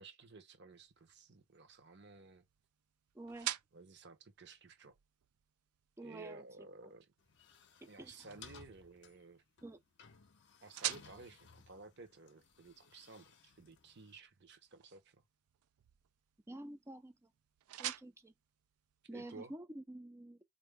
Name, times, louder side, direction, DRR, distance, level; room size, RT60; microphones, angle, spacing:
voice 1, 0.0-2.4 3.7-5.0 6.0-7.1 7.9-9.4 10.6-15.2 19.1-19.5, right 3 dB, 50° right, 0.9 m, -55 dB
sound 1, 0.7-19.5, right 13 dB, 85° right, 0.4 m, -50 dB
voice 2, 3.1-3.5 6.0-6.7 8.0-8.1 9.6-9.8 16.5-17.2 17.8-18.3 19.1-20.4, right 1 dB, 10° right, 0.4 m, -49 dB
sound 2, 7.2-14.2, left 6 dB, 50° left, 0.6 m, -59 dB
4.3 x 2.6 x 3.3 m
head